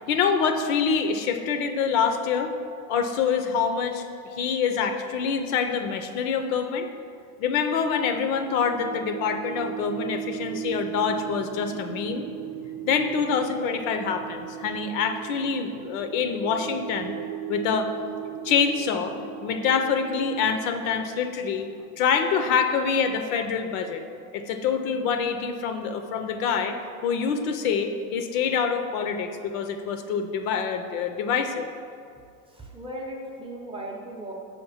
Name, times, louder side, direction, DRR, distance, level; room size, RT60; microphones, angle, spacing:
voice 1, 0.0-2.5 2.9-6.9 7.4-12.2 12.8-17.1 17.5-17.9 18.4-19.1 19.4-21.7 22.0-24.0 24.3-31.7, left 6 dB, 65° left, 7 dB, 0.7 m, -26 dB
sound 1, 7.5-22.5, right 11 dB, 60° right, 0.7 m, -38 dB
voice 2, 32.4-34.3, right 1 dB, 10° right, -2 dB, 0.6 m, -37 dB
5.9 x 4.7 x 5.6 m, 2.3 s
supercardioid pair, 140°, 45 cm